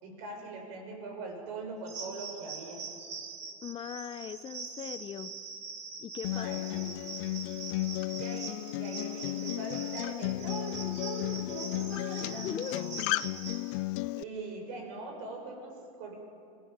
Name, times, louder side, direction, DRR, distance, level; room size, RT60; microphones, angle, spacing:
voice 1, 0.0-2.9 6.3-6.9 8.1-12.5 14.2-16.1, right 3 dB, 65° right, 2 dB, 7.2 m, -42 dB
sound 1, 1.9-13.6, right 5 dB, 40° right, 4.7 m, -43 dB
voice 2, 3.6-5.3 6.0-6.7 12.4-12.9, left 9 dB, 30° left, 14 dB, 0.7 m, -39 dB
Acoustic guitar, 6.2-14.2, left 20 dB, 60° left, 0.4 m, -34 dB
25.0 x 17.5 x 7.5 m, 2.7 s
supercardioid pair, 120°, 18 cm